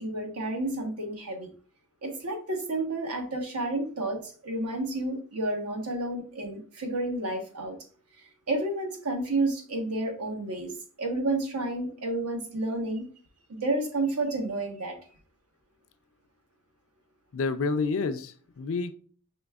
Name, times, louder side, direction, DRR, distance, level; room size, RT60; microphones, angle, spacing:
voice 1, 0.0-1.5 2.0-7.8 8.2-10.7 11.0-13.0 13.5-15.0, right 2 dB, 90° right, 1.1 m, -30 dB
voice 2, 17.3-18.9, left 4 dB, 60° left, 0.4 m, -29 dB
5.0 x 3.3 x 2.3 m
head